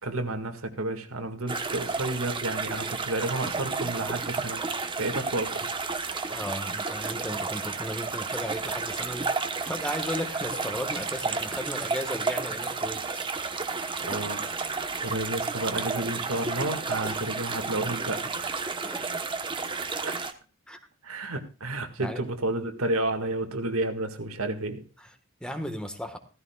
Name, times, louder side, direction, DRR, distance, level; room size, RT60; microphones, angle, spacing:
voice 1, 0.0-4.6 5.0-5.7 6.2-6.3 14.1-18.9 20.0-20.2 21.0-24.8, right 2 dB, 80° right, 1.9 m, -31 dB
sound 1, 1.5-20.3, right 4 dB, 25° right, 1.0 m, -32 dB
voice 2, 6.3-13.2 18.8-19.0 20.7-20.8 22.0-22.2 25.0-25.1 25.4-26.2, equal, 5° left, 1.4 m, -35 dB
15.5 x 15.0 x 2.3 m
head